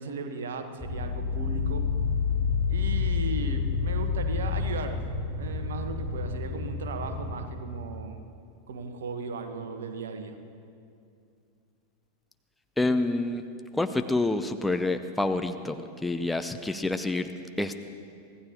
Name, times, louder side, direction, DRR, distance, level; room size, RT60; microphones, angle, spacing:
voice 1, 0.0-1.9 2.7-5.0 5.3-8.2 8.7-10.4, right 4 dB, 60° right, 6 dB, 1.3 m, -36 dB
sound 1, 0.8-7.4, left 5 dB, 10° right, 4.8 m, -29 dB
voice 2, 12.8-13.4 13.7-17.3 17.6-17.8, left 2 dB, 5° left, 7 dB, 0.6 m, -27 dB
24.5 x 17.0 x 3.0 m, 2.5 s
figure-of-eight pair, 90°, 0 cm